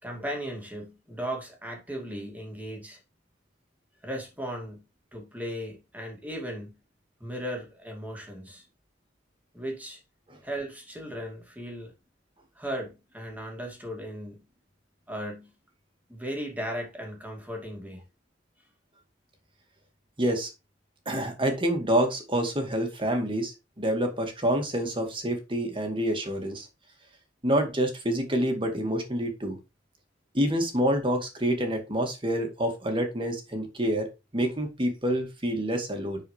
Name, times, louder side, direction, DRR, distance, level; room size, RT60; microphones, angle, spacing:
voice 1, 0.0-3.0 4.0-4.8 5.1-6.7 7.2-8.7 9.5-10.0 10.4-11.9 12.6-14.4 15.1-15.5 16.1-18.0, equal, 10° right, 2.6 m, -36 dB
voice 2, 20.2-20.5 21.1-26.7 27.4-29.6 30.3-36.2, equal, 25° right, 2.1 m, -27 dB
10.5 x 4.8 x 3.4 m
head